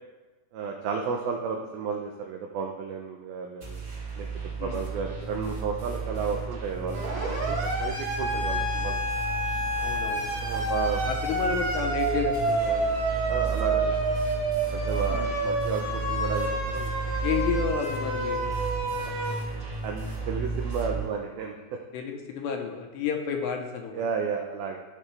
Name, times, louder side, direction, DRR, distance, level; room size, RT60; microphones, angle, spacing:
voice 1, 0.5-3.8 4.2-4.3 4.6-9.0 10.4-11.1 13.3-13.9 14.7-16.9 19.1-19.2 19.8-21.6 23.9-24.8, right 6 dB, 85° right, 2 dB, 2.1 m, -32 dB
sound 1, 3.6-21.1, right 4 dB, 30° right, 2.2 m, -33 dB
Siren, 6.9-19.3, right 2 dB, 50° right, 4.1 m, -29 dB
voice 2, 9.8-10.3 11.0-13.0 13.9-14.0 15.1-15.3 17.2-18.5 21.9-24.1, left 6 dB, 75° left, 3 dB, 2.8 m, -31 dB
14.5 x 6.3 x 3.3 m, 1.3 s
omnidirectional pair, 5.3 m